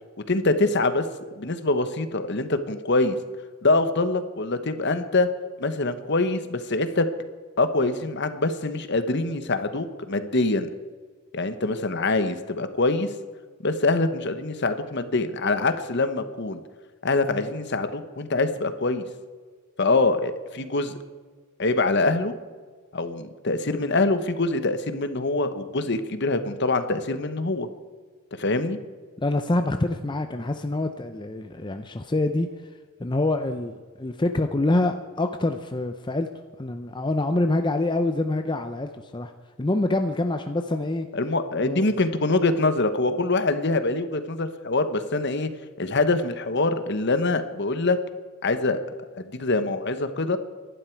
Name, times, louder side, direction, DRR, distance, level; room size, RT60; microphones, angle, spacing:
voice 1, 0.3-1.0 1.4-3.2 3.6-5.3 5.6-7.0 7.6-10.7 11.3-13.1 13.6-16.6 17.0-19.0 19.8-20.9 21.6-22.3 22.9-27.7 28.4-28.8 41.1-45.5 45.8-48.0 48.4-48.8 49.2-50.4, left 2 dB, 50° left, 10 dB, 1.1 m, -24 dB
voice 2, 29.2-32.5 33.0-36.3 36.6-39.3 39.6-41.1 41.6-41.9, left 2 dB, 20° left, 7 dB, 0.6 m, -26 dB
25.0 x 11.5 x 4.6 m, 1.5 s
head